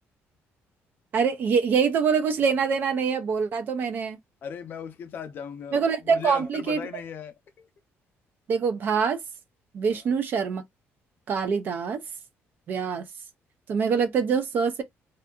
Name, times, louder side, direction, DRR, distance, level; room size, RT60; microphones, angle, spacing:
voice 1, 1.1-4.2 5.7-6.8 8.5-9.2 9.7-10.6 11.3-12.0 12.7-13.0 13.7-14.8, right 6 dB, 40° right, 0.3 m, -24 dB
voice 2, 4.4-7.7 9.9-10.0, left 7 dB, 45° left, 0.5 m, -38 dB
2.6 x 2.3 x 2.3 m
cardioid pair, 180°, 5 cm